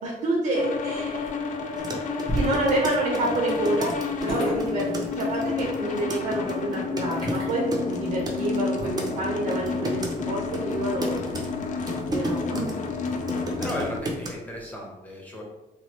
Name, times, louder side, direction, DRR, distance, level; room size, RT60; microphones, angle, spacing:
voice 1, 0.0-1.3 2.3-3.9 4.2-4.9 5.2-11.2 12.1-12.7, right 2 dB, 70° right, -3 dB, 0.7 m, -28 dB
sound 1, 0.6-14.0, left 5 dB, 55° left, 0.4 m, -30 dB
sound 2, 0.7-14.7, equal, 35° left, 1.1 m, -39 dB
sound 3, 1.8-9.1 9.5-10.1 10.5-12.7 13.1-14.3, right 1 dB, 25° right, 0.5 m, -33 dB
voice 2, 13.6-15.4, equal, 10° left, -2 dB, 0.8 m, -35 dB
3.0 x 2.3 x 3.1 m, 1.1 s
cardioid pair, 125°, 15 cm